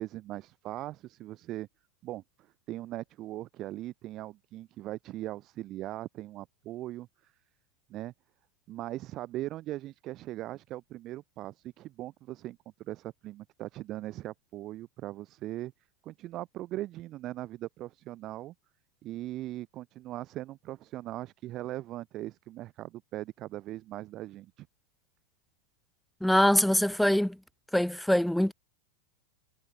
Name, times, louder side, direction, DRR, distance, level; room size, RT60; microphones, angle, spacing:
voice 1, 0.0-1.7 2.0-2.2 2.7-7.3 7.9-8.1 8.7-15.7 16.0-18.5 19.0-24.7, right 15 dB, 35° right, 3.1 m, -40 dB
voice 2, 26.2-27.4 27.7-28.5, left 1 dB, ahead, 0.6 m, -23 dB
figure-of-eight pair, 90°, 0 cm